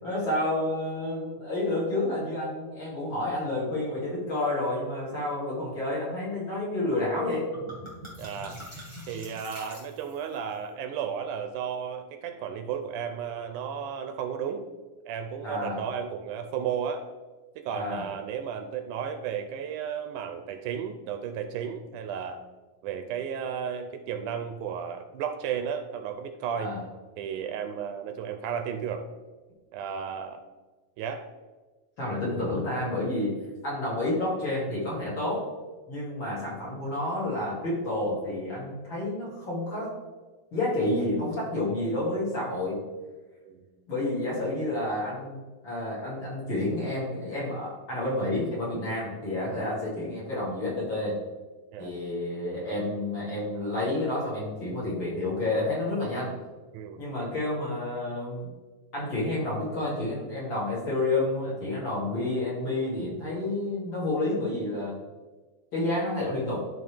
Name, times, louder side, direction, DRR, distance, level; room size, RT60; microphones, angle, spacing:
voice 1, 0.0-7.5 15.4-15.8 17.7-18.0 26.6-26.8 32.0-33.3 33.6-35.5 35.9-39.9 40.5-42.8 43.9-51.2 51.8-56.3 57.0-58.5 58.9-65.0 65.7-66.7, left 1 dB, 40° left, -6 dB, 2.8 m, -30 dB
sound 1, 7.0-7.1 7.3-10.4, equal, 10° left, 1.4 m, -43 dB
voice 2, 8.2-8.6 9.1-14.6 15.1-17.1 17.6-22.4 22.8-26.7 27.2-29.1 29.7-30.4 31.0-31.3 43.4-43.7 51.7-52.0 56.7-57.0, right 7 dB, 80° right, 6 dB, 2.0 m, -33 dB
12.0 x 4.1 x 3.4 m, 1.2 s
omnidirectional pair, 3.7 m